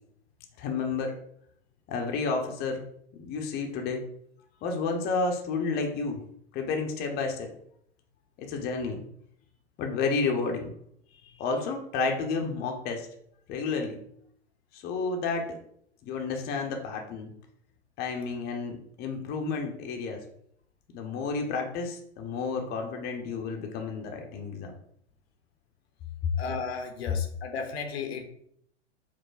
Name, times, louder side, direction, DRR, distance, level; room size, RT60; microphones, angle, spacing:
voice 1, 0.6-1.2 1.9-2.8 3.1-4.0 4.6-6.2 6.5-7.5 8.4-9.0 9.8-10.7 11.4-13.1 13.5-14.0 14.7-15.6 16.0-17.3 18.0-20.2 20.9-24.7 26.2-26.3, left 4 dB, 30° left, 2 dB, 0.7 m, -31 dB
voice 2, 26.4-28.3, left 5 dB, 65° left, 5 dB, 0.8 m, -34 dB
4.8 x 2.1 x 3.9 m, 0.67 s
figure-of-eight pair, 95°, 34 cm